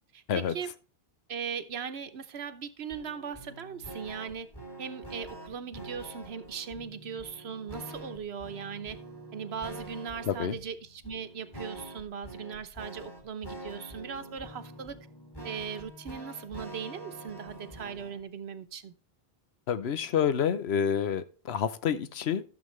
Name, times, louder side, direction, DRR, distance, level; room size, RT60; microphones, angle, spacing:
voice 1, 0.1-0.7 1.3-4.5 4.8-9.0 9.3-15.0 15.4-18.9, right 7 dB, 80° right, 11 dB, 1.2 m, -39 dB
sound 1, 2.9-18.2, right 1 dB, 20° left, 2.5 m, -45 dB
voice 2, 10.2-10.6 19.7-22.4, left 8 dB, 80° left, 12 dB, 1.0 m, -28 dB
13.0 x 7.2 x 3.2 m, 0.37 s
omnidirectional pair, 1.1 m